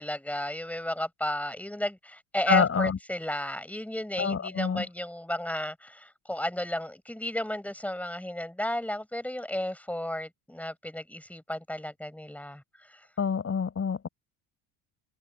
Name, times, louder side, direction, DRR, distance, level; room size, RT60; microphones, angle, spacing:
voice 1, 0.0-13.0, left 1 dB, 5° left, 7.0 m, -33 dB
voice 2, 2.5-3.0 4.2-4.9 13.2-14.1, left 6 dB, 35° left, 5.0 m, -26 dB
supercardioid pair, 80°, 41 cm